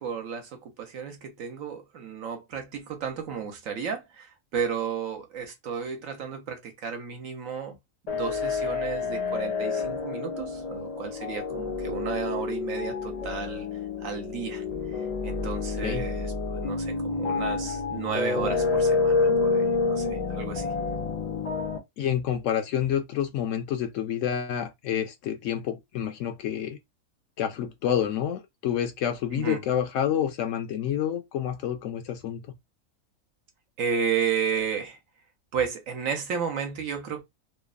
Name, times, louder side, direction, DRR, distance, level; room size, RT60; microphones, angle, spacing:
voice 1, 0.0-7.8 8.1-13.7 14.0-14.6 14.9-20.7 29.3-29.6 33.8-35.0 35.5-37.2, right 7 dB, 70° right, 1.1 m, -33 dB
sound 1, 8.1-21.8, left 4 dB, 50° left, 0.4 m, -28 dB
voice 2, 22.0-26.8 27.4-32.4, left 9 dB, 70° left, 0.9 m, -28 dB
3.0 x 2.0 x 2.3 m
omnidirectional pair, 1.5 m